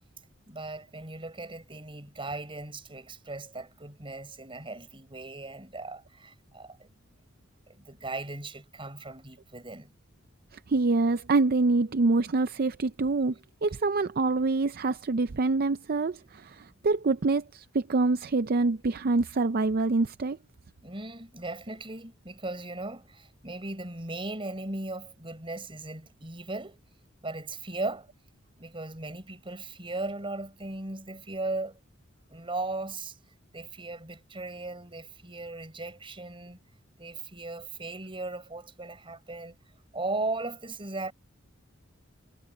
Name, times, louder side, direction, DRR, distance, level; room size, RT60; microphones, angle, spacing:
voice 1, 0.5-6.9 7.7-9.9 20.8-26.8 27.2-28.1 28.6-31.8 32.3-33.2 33.5-36.6 37.0-39.6 39.9-41.1, right 2 dB, 25° right, 5.0 m, -37 dB
voice 2, 10.5-13.4 13.6-20.4, right 3 dB, 50° right, 0.5 m, -26 dB
head